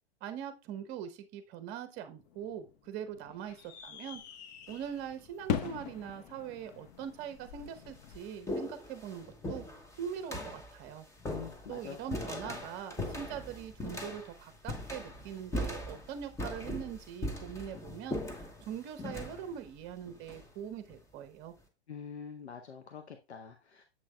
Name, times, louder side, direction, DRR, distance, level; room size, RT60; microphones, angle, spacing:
voice 1, 0.2-4.2 4.7-9.6 10.0-11.1 11.7-21.5, right 9 dB, 30° right, 10 dB, 0.9 m, -42 dB
sound 1, 2.2-8.2, left 9 dB, 40° left, 0.8 m, -41 dB
sound 2, 4.7-5.1 6.1-6.2 7.0-7.1 7.5-21.0, left 1 dB, 10° left, 1.0 m, -40 dB
voice 2, 11.3-12.2 12.4-12.7 21.9-23.8, left 7 dB, 85° left, 5 dB, 0.8 m, -45 dB
7.6 x 6.0 x 2.2 m, 0.29 s
figure-of-eight pair, 110°, 32 cm